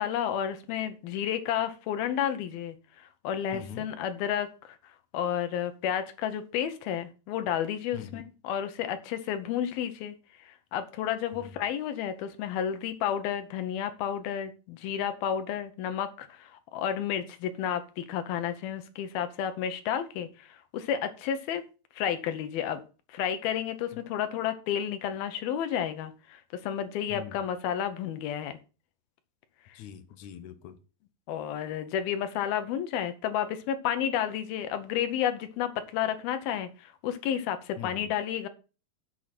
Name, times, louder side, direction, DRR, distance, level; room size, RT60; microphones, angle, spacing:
voice 1, 0.0-4.8 5.1-10.1 10.5-21.6 22.0-22.8 23.1-28.6 31.3-38.5, left 9 dB, 90° left, 3.0 m, -31 dB
voice 2, 3.5-3.9 7.9-8.2 11.3-11.6 27.1-27.4 29.7-30.8 37.8-38.1, left 8 dB, 65° left, 2.3 m, -42 dB
7.8 x 7.0 x 6.0 m
omnidirectional pair, 4.2 m